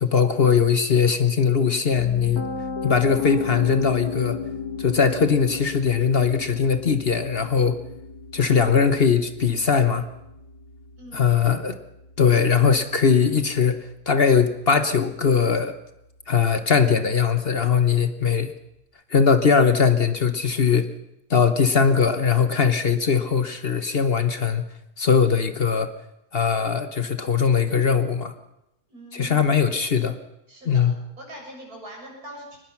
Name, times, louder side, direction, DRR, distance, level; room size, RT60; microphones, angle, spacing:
voice 1, 0.0-2.4 2.8-4.4 4.8-7.8 8.3-10.1 11.1-11.8 12.2-15.7 16.3-18.5 19.1-20.9 21.3-24.6 25.0-25.9 26.3-28.3 29.1-30.2 30.7-30.9, left 6 dB, 45° left, 10 dB, 1.2 m, -20 dB
Piano, 2.0-13.9, left 5 dB, 80° left, 2.9 m, -35 dB
voice 2, 11.0-11.4 28.9-29.5 30.5-30.9 31.2-32.6, right 1 dB, 85° right, -1 dB, 7.7 m, -42 dB
24.0 x 20.0 x 5.9 m, 0.86 s
omnidirectional pair, 1.6 m